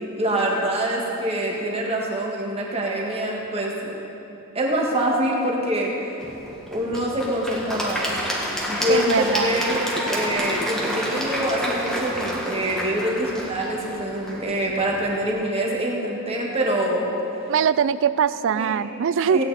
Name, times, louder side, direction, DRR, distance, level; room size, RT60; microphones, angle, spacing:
voice 1, 0.0-3.9 4.5-6.0 6.7-8.1 8.7-17.1 18.5-18.9 19.3-19.4, right 1 dB, 30° right, -2 dB, 1.8 m, -25 dB
Applause / Crowd, 6.2-15.3, equal, ahead, 1.7 m, -29 dB
voice 2, 8.9-9.5 17.5-19.4, right 7 dB, 60° right, 15 dB, 0.4 m, -22 dB
16.5 x 9.7 x 4.3 m, 3.0 s
head